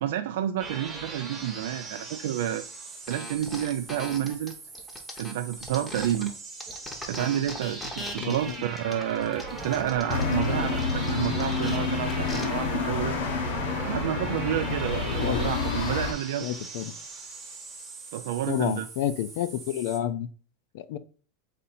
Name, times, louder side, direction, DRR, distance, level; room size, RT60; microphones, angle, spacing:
voice 1, 0.0-2.6 3.1-4.5 5.2-6.3 7.1-13.2 13.8-16.5 18.1-18.9, right 11 dB, 75° right, 0.3 m, -30 dB
sound 1, 0.6-20.0, right 3 dB, 20° right, 1.1 m, -40 dB
sound 2, 3.1-6.3 6.6-12.4, left 1 dB, 10° left, 0.8 m, -40 dB
voice 2, 8.2-8.5 15.2-15.4 16.4-16.9 18.5-20.3 20.7-21.0, left 11 dB, 65° left, 0.4 m, -29 dB
sound 3, 10.1-16.1, left 4 dB, 80° left, 0.8 m, -28 dB
4.2 x 2.6 x 4.1 m
supercardioid pair, 155°, 0 cm